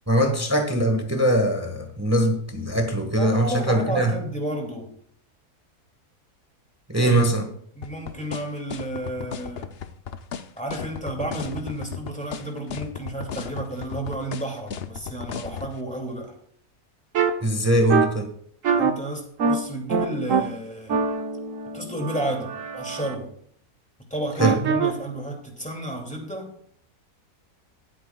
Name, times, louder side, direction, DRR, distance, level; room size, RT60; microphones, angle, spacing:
voice 1, 0.1-4.1 6.9-7.5 17.4-18.3 24.4-24.6, right 1 dB, 10° right, 4 dB, 1.2 m, -21 dB
voice 2, 3.1-5.0 6.9-7.3 7.7-9.7 10.6-16.4 18.7-21.0 21.7-23.3 24.1-26.5, right 1 dB, 5° left, 1 dB, 2.3 m, -32 dB
sound 1, 7.8-15.7, left 7 dB, 55° left, 0.7 m, -34 dB
sound 2, 17.1-17.3 17.9-18.1 18.6-18.9 19.4-19.6 19.9-20.4 20.9-23.1 24.4-24.9, right 6 dB, 60° right, 1.2 m, -23 dB
23.0 x 8.5 x 2.3 m, 0.63 s
omnidirectional pair, 1.6 m